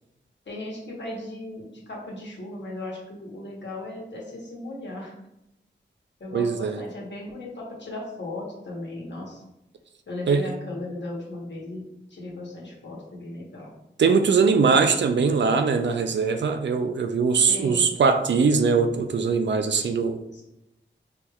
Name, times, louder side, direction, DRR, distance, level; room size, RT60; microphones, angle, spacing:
voice 1, 0.5-5.1 6.2-9.4 10.1-11.8 12.1-13.7 17.5-17.9 19.8-20.0 20.3-20.4, left 2 dB, 65° left, -2 dB, 1.1 m, -37 dB
voice 2, 6.3-6.8 10.3-10.5 14.0-20.2, right 5 dB, 65° right, 7 dB, 0.4 m, -21 dB
4.3 x 3.2 x 2.3 m, 0.88 s
wide cardioid pair, 70°, 20 cm